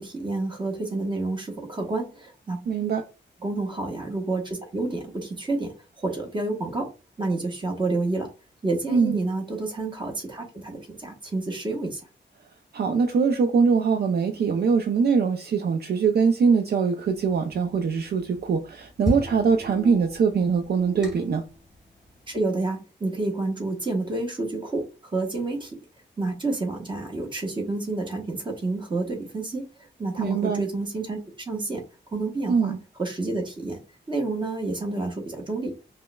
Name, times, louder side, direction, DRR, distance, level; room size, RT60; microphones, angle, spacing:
voice 1, 0.0-2.6 3.4-6.9 7.2-8.3 8.6-12.0 22.3-24.9 25.1-25.7 26.2-29.7 30.0-31.2 31.5-31.8 32.1-32.7 33.0-33.8 34.1-35.7, right 2 dB, 25° right, 1.1 m, -29 dB
voice 2, 2.7-3.0 8.9-9.2 12.7-21.4 30.2-30.7 32.5-32.8, right 5 dB, 55° right, 0.4 m, -22 dB
sound 1, 17.1-22.4, left 1 dB, ahead, 1.5 m, -36 dB
5.2 x 2.1 x 2.2 m
wide cardioid pair, 120°, 19 cm